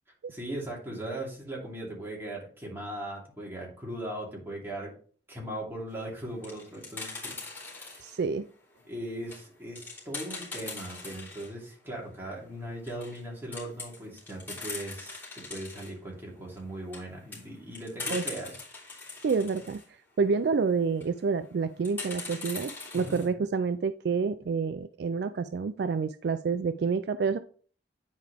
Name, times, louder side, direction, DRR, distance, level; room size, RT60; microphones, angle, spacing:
voice 1, 0.3-4.9 5.3-8.0 8.9-18.6 22.9-23.2, right 1 dB, 15° right, -3 dB, 2.7 m, -39 dB
sound 1, 6.2-8.2 8.7-11.5 11.9-12.0 12.3-12.4 12.7-13.2 13.5-15.9 16.6-19.8 20.8-21.1 21.8-23.3, left 3 dB, 10° left, 3.4 m, -41 dB
voice 2, 8.0-8.5 18.1-18.2 19.2-19.8 20.2-27.4, right 5 dB, 60° right, 12 dB, 0.3 m, -28 dB
9.5 x 4.7 x 3.4 m, 0.44 s
head